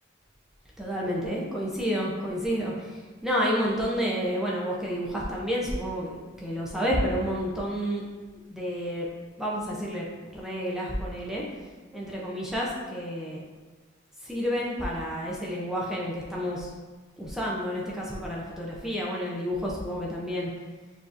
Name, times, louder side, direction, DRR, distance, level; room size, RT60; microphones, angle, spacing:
voice 1, 0.8-8.0 8.5-9.1 9.4-11.4 11.9-13.4 14.2-16.7 17.2-20.5, equal, ahead, -5 dB, 0.5 m, -30 dB
6.9 x 2.6 x 2.5 m, 1.3 s
head